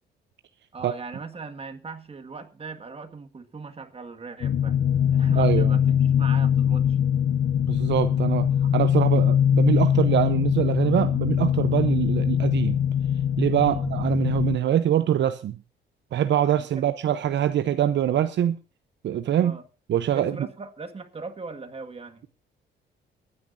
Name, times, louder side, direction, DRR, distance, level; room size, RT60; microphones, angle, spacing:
voice 1, 0.7-7.0 13.5-13.8 16.6-16.9 19.4-19.7 20.1-22.2, right 4 dB, 30° right, 1.9 m, -39 dB
sound 1, 4.4-14.6, left 9 dB, 75° left, 1.1 m, -22 dB
voice 2, 5.4-5.7 7.7-12.8 13.4-15.6 16.1-18.6 19.0-19.6 19.9-20.4, right 10 dB, 65° right, 0.8 m, -24 dB
23.0 x 9.8 x 2.7 m
cardioid pair, 90°, 20 cm